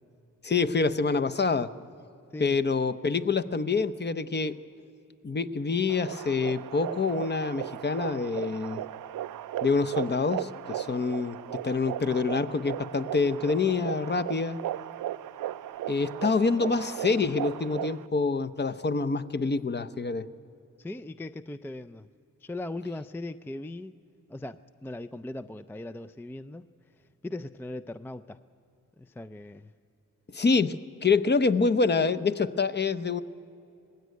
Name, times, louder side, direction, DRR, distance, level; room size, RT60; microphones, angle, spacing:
voice 1, 0.4-1.7 2.4-4.6 5.2-8.8 9.6-14.6 15.9-20.3 30.3-33.2, left 4 dB, 30° left, 10 dB, 0.7 m, -26 dB
sound 1, 5.9-18.1, right 12 dB, 80° right, 0.5 m, -36 dB
voice 2, 20.8-22.1 22.4-24.0 24.3-26.7 27.0-28.4 29.0-29.7, left 2 dB, 5° left, 12 dB, 0.4 m, -39 dB
20.0 x 16.0 x 9.4 m, 2.7 s
cardioid pair, 70°, 32 cm